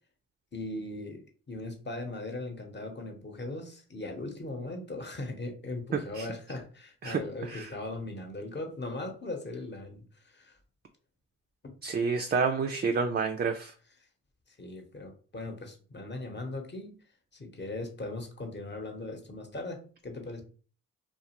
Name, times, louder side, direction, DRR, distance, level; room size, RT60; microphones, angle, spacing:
voice 1, 0.5-10.6 11.6-11.8 14.6-16.9 17.3-20.4, left 2 dB, 30° left, 4 dB, 0.9 m, -39 dB
voice 2, 5.9-6.3 7.0-7.7 11.8-13.7, right 5 dB, 30° right, 4 dB, 0.4 m, -29 dB
2.4 x 2.4 x 2.9 m, 0.40 s
supercardioid pair, 60°, 35 cm